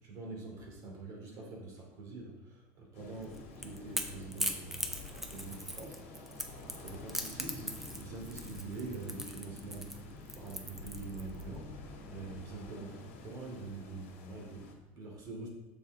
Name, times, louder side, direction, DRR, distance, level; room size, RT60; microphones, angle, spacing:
voice 1, 0.0-15.5, right 3 dB, 55° right, -1 dB, 2.7 m, -45 dB
sound 1, 2.9-14.7, left 2 dB, 90° left, 1.8 m, -49 dB
Crackle / Crack, 3.2-11.4, equal, 5° right, 0.7 m, -39 dB
6.9 x 6.8 x 3.6 m, 0.98 s
supercardioid pair, 115°, 7 cm